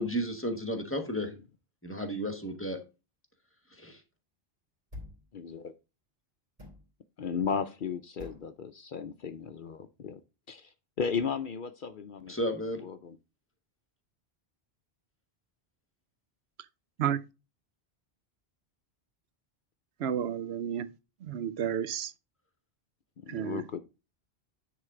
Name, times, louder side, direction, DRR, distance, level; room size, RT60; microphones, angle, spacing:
voice 1, 0.0-1.3 1.8-2.8 3.7-4.0 12.3-12.8, equal, 10° left, 1.5 m, -33 dB
sound 1, 4.9-5.3 6.6-6.9 8.2-8.5, left 2 dB, 45° right, 3.2 m, -46 dB
voice 2, 5.3-5.7 7.2-10.2 10.5-12.3 12.8-13.2 23.2-23.8, left 6 dB, 60° left, 0.7 m, -35 dB
voice 3, 20.0-20.9 21.3-22.1 23.3-23.6, right 9 dB, 75° right, 0.8 m, -31 dB
9.7 x 3.9 x 4.9 m
omnidirectional pair, 1.1 m